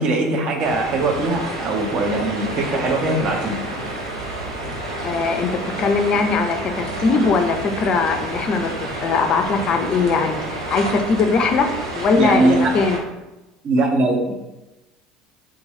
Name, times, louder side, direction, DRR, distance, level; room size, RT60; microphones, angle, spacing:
voice 1, 0.0-3.6 12.1-12.7 13.6-14.3, right 2 dB, 45° right, 2 dB, 0.6 m, -20 dB
sound 1, 0.6-13.0, right 1 dB, 85° right, 0.6 m, -29 dB
voice 2, 5.0-11.7 11.9-13.0, left 4 dB, 40° left, 6 dB, 0.4 m, -20 dB
3.6 x 3.0 x 2.7 m, 1.0 s
figure-of-eight pair, 65°, 2 cm